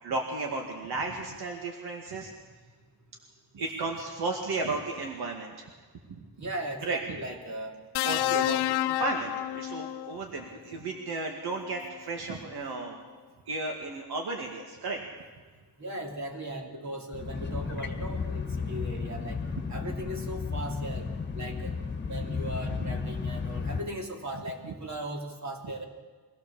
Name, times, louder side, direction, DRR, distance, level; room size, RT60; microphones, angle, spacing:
voice 1, 0.0-2.3 3.5-5.7 6.1-6.2 6.8-7.2 8.0-13.0 13.5-15.0 22.8-22.9 24.6-24.7, right 3 dB, 75° right, 1 dB, 2.2 m, -34 dB
voice 2, 6.4-7.7 8.0-8.5 15.8-19.4 19.7-21.8 22.0-25.8, right 1 dB, 45° right, 1 dB, 3.0 m, -38 dB
sound 1, 7.9-10.2 11.5-11.7, left 15 dB, 90° left, 0.6 m, -29 dB
sound 2, 17.1-23.8, left 5 dB, 25° left, 1.5 m, -33 dB
24.0 x 16.5 x 7.1 m, 1.4 s
wide cardioid pair, 160°, 39 cm